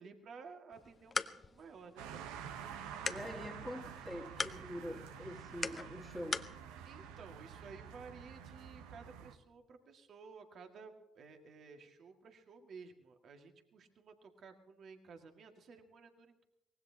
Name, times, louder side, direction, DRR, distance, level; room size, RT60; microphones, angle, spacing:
voice 1, 0.0-2.3 6.8-16.4, right 5 dB, 55° right, 4 dB, 2.0 m, -54 dB
sound 1, 0.7-6.6, left 4 dB, 35° left, 0.8 m, -43 dB
sound 2, 2.0-9.4, right 8 dB, 80° right, 1.0 m, -49 dB
voice 2, 3.1-6.4, left 1 dB, ahead, -4 dB, 1.8 m, -45 dB
23.5 x 19.0 x 2.8 m, 0.88 s
hypercardioid pair, 55°, 0 cm